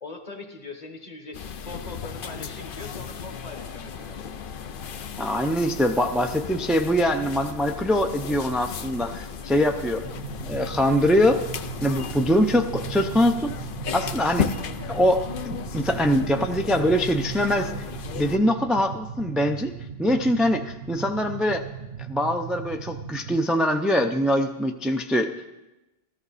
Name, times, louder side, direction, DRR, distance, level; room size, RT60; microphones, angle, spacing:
voice 1, 0.0-4.2, left 3 dB, 40° left, 5 dB, 1.3 m, -41 dB
sound 1, 1.3-18.4, left 7 dB, 60° left, 0.8 m, -35 dB
voice 2, 5.2-10.0 10.4-11.4 11.8-13.5 13.9-14.5 14.9-17.7 18.2-19.7 20.0-21.6 22.0-25.3, equal, ahead, 5 dB, 0.4 m, -23 dB
sound 2, 10.0-23.4, right 7 dB, 75° right, 1.0 m, -37 dB
14.5 x 13.5 x 4.1 m, 1.0 s
omnidirectional pair, 1.1 m